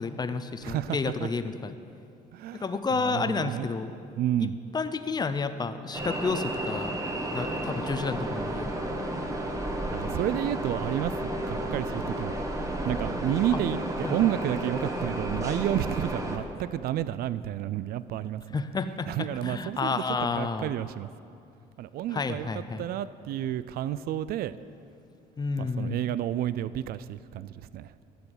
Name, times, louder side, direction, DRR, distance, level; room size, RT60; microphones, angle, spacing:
voice 1, 0.0-1.7 2.5-3.9 4.4-4.5 4.7-6.9 7.3-8.7 13.5-13.6 14.0-14.2 18.5-20.7 22.1-22.9 25.4-26.0, left 4 dB, 25° left, 10 dB, 0.8 m, -30 dB
voice 2, 0.6-1.3 2.3-2.6 2.9-3.7 4.2-4.6 9.9-12.4 12.9-18.4 19.1-19.9 20.2-21.1 21.8-22.5 22.8-24.5 25.6-27.9, right 12 dB, 65° right, 16 dB, 0.4 m, -30 dB
sound 1, 5.9-16.4, right 1 dB, 20° right, 1.5 m, -32 dB
14.0 x 7.0 x 9.7 m, 2.5 s
cardioid pair, 110°, 17 cm